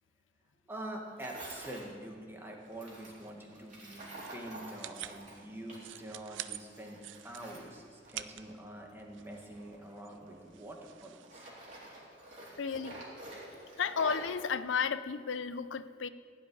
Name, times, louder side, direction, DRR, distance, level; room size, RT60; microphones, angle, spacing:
voice 1, 0.7-4.1 4.3-11.5 13.3-13.7, right 1 dB, 10° right, 0 dB, 1.8 m, -46 dB
Tools, 1.2-1.8 2.7-6.0 6.3-8.6 9.2-10.8 11.2-14.4, right 1 dB, 40° right, 3.8 m, -48 dB
sound 1, 2.6-11.5, right 12 dB, 85° right, 0.5 m, -49 dB
voice 2, 12.6-13.0 13.8-16.1, left 6 dB, 90° left, 14 dB, 0.6 m, -33 dB
16.0 x 5.7 x 9.8 m, 2.3 s
head